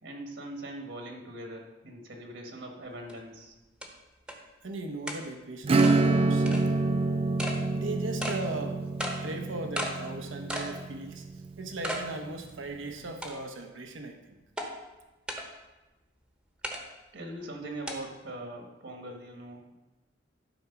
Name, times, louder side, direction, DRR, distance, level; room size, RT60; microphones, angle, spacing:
voice 1, 0.0-3.5 17.1-19.7, right 1 dB, 65° right, 2 dB, 1.5 m, -41 dB
sound 1, 3.1-3.2 3.8-3.9 4.3-4.4 5.1-5.2 5.8-6.0 6.5-6.6 7.4-7.6 8.2-8.4 9.0-9.2 9.8-9.9 10.5-10.7 11.2-11.3 11.8-12.0 12.5-12.6 13.2-13.6 14.6-14.7 15.3-15.4 16.6-16.8 17.9-18.0, equal, 5° right, 1.0 m, -34 dB
voice 2, 4.6-6.7 7.4-8.8 9.2-14.4, right 2 dB, 85° right, 5 dB, 0.9 m, -38 dB
Acoustic guitar / Strum, 5.6-11.9, right 3 dB, 30° right, 0.3 m, -27 dB
12.0 x 4.5 x 5.8 m, 1.1 s
head